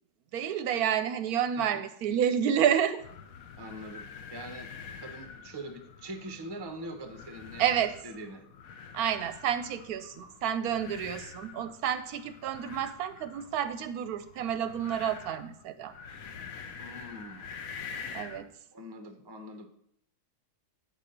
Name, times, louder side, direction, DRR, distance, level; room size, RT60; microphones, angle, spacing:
voice 1, 0.3-3.0 7.6-8.0 8.9-15.9 18.1-18.5, right 9 dB, 75° right, 11 dB, 1.0 m, -29 dB
sound 1, 3.0-18.5, left 6 dB, 65° left, 1.1 m, -46 dB
voice 2, 3.6-7.6 8.0-8.5 10.2-10.3 16.8-17.5 18.7-19.7, right 1 dB, 25° right, 6 dB, 0.6 m, -43 dB
8.4 x 4.3 x 6.5 m, 0.70 s
omnidirectional pair, 1.7 m